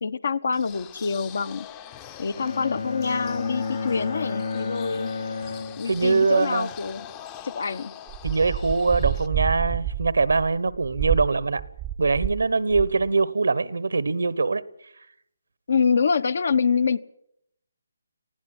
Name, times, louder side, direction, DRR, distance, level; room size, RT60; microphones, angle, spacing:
voice 1, 0.0-1.7 2.2-5.1 5.8-7.1 7.4-7.9 15.7-17.0, left 5 dB, 60° left, 1.1 m, -25 dB
sound 1, 0.5-9.3, left 10 dB, 20° left, 0.8 m, -43 dB
Bowed string instrument, 2.4-6.4, left 4 dB, 85° left, 2.4 m, -31 dB
voice 2, 5.8-6.7 8.2-11.6 12.0-14.6, right 4 dB, 80° right, 1.2 m, -22 dB
sound 2, 8.1-12.4 12.7-13.1, right 12 dB, 15° right, 0.7 m, -29 dB
19.5 x 16.0 x 10.0 m
hypercardioid pair, 155°, 0 cm